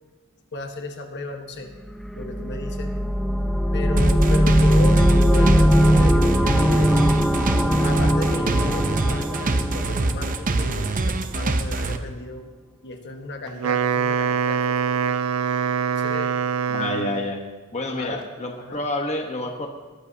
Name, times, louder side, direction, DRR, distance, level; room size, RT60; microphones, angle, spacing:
voice 1, 0.5-1.7 2.1-3.0 3.7-7.2 7.7-12.4 12.8-15.2 15.9-16.4 18.0-18.2 18.6-18.8, left 2 dB, 55° left, 4 dB, 1.4 m, -35 dB
sound 1, 1.9-10.7, equal, ahead, 0.8 m, -20 dB
sound 2, 4.0-12.0, right 2 dB, 40° right, 0.8 m, -24 dB
Wind instrument woodwind instrument, 13.5-17.3, right 7 dB, 75° right, 0.4 m, -24 dB
voice 2, 16.7-17.4 17.7-19.7, left 2 dB, 30° left, 2 dB, 1.2 m, -28 dB
20.0 x 13.5 x 2.8 m, 1.3 s
head